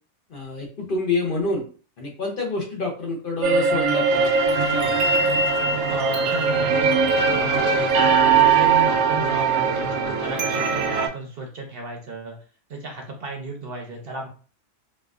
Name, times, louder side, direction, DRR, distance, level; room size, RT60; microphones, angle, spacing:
voice 1, 0.3-1.7 2.0-4.3 4.7-4.9, left 3 dB, 50° left, -1 dB, 0.8 m, -27 dB
sound 1, 3.4-11.1, right 5 dB, 90° right, 1.0 m, -20 dB
voice 2, 5.9-6.9 7.3-12.4 12.7-14.3, right 2 dB, 55° right, 1 dB, 0.8 m, -33 dB
4.0 x 2.4 x 2.4 m, 0.40 s
omnidirectional pair, 1.4 m